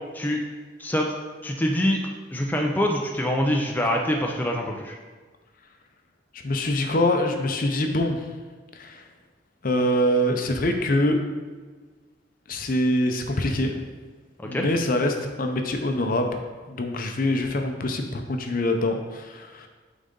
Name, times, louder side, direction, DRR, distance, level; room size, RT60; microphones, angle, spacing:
voice 1, 0.8-1.1 1.4-2.0 2.3-5.0 14.4-14.7, equal, 10° left, 0 dB, 0.5 m, -25 dB
voice 2, 6.3-8.3 8.7-9.0 9.6-11.2 12.5-13.7 14.4-16.4 16.7-19.7, left 1 dB, 50° left, 4 dB, 0.6 m, -24 dB
8.8 x 4.0 x 3.8 m, 1.4 s
head